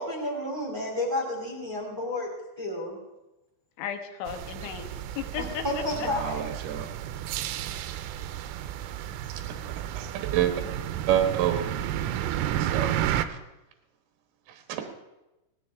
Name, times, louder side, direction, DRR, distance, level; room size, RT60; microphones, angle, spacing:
voice 1, 0.0-2.3 2.6-3.0 5.6-6.5, left 1 dB, 25° right, -3 dB, 1.1 m, -31 dB
voice 2, 3.8-4.9 5.2-6.1, left 8 dB, 75° left, 5 dB, 3.4 m, -35 dB
sound 1, 4.3-13.3, right 11 dB, 90° right, 3.2 m, -32 dB
voice 3, 6.1-6.9 10.0-10.1 10.3-10.5 11.1-11.9 12.5-13.0 14.7-14.8, right 11 dB, 70° right, 5 dB, 2.0 m, -27 dB
18.0 x 13.5 x 3.5 m, 0.99 s
omnidirectional pair, 5.7 m